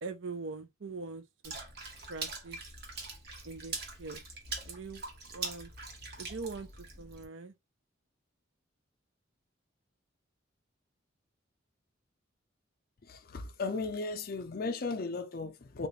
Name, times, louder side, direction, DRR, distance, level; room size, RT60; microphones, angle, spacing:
voice 1, 0.0-1.5 2.1-2.6 3.4-4.2 4.7-5.0 5.3-5.7 6.2-7.5, right 4 dB, 70° right, 0.6 m, -42 dB
Water / Splash splatter, 1.4-7.3, right 3 dB, 55° right, 1.1 m, -42 dB
voice 2, 13.0-15.9, left 3 dB, 50° left, 0.5 m, -36 dB
3.6 x 2.4 x 3.1 m
head